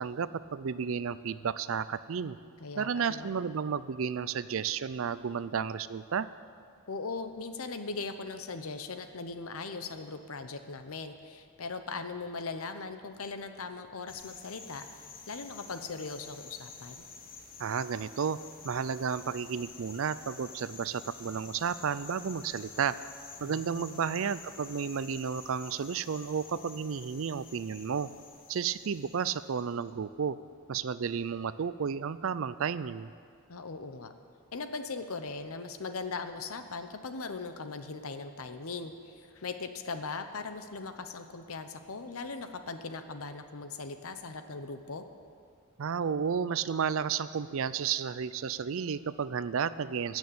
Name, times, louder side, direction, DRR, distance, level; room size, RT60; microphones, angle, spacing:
voice 1, 0.0-2.4 2.8-6.3 17.6-18.4 18.6-23.0 23.4-28.1 28.5-30.4 30.7-33.1 45.8-50.2, right 6 dB, 65° right, 15 dB, 0.4 m, -32 dB
voice 2, 2.6-3.3 6.9-17.1 23.4-24.2 33.5-34.1 34.5-45.0, left 4 dB, 75° left, 8 dB, 0.9 m, -39 dB
sound 1, 14.1-29.8, left 5 dB, 40° left, 1.2 m, -50 dB
16.0 x 6.4 x 8.7 m, 2.2 s
head